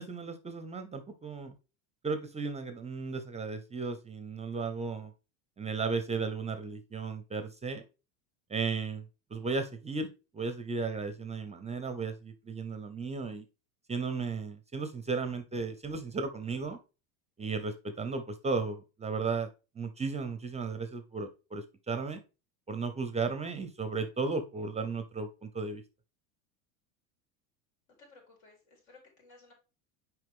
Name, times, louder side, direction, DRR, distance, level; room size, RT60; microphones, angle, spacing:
voice 1, 0.0-1.5 2.0-5.1 5.6-7.8 8.5-9.0 9.3-13.4 13.9-16.8 17.4-19.5 19.8-22.2 22.7-25.8, right 4 dB, 15° right, 9 dB, 0.5 m, -35 dB
voice 2, 28.0-29.5, left 3 dB, 80° left, 0 dB, 3.9 m, -58 dB
6.5 x 4.6 x 3.5 m, 0.31 s
supercardioid pair, 110°, 41 cm